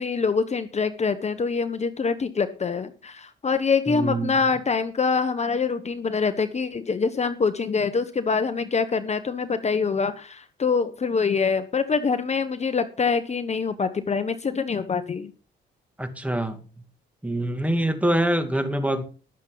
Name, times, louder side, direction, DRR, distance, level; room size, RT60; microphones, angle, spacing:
voice 1, 0.0-15.3, left 5 dB, 35° left, 10 dB, 1.1 m, -25 dB
voice 2, 3.9-4.3 16.0-16.6 17.2-19.0, right 1 dB, 5° right, 7 dB, 2.4 m, -24 dB
20.0 x 7.3 x 4.0 m, 0.37 s
cardioid pair, 90°, 20 cm